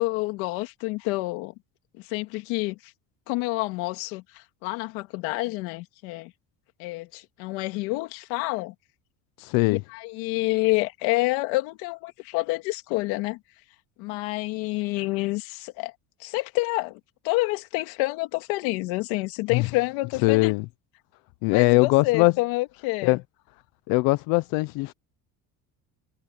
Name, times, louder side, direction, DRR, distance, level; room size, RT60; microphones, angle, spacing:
voice 1, 0.0-1.5 2.1-2.8 3.3-6.3 6.8-8.7 9.7-13.4 14.0-15.9 16.2-17.0 17.2-20.5 21.5-23.2, left 22 dB, 85° left, 2.4 m, -28 dB
voice 2, 9.4-9.8 19.5-19.7 20.2-20.6 21.4-22.3 23.0-23.2 23.9-24.9, left 24 dB, 70° left, 0.6 m, -21 dB
cardioid pair, 170°, 36 cm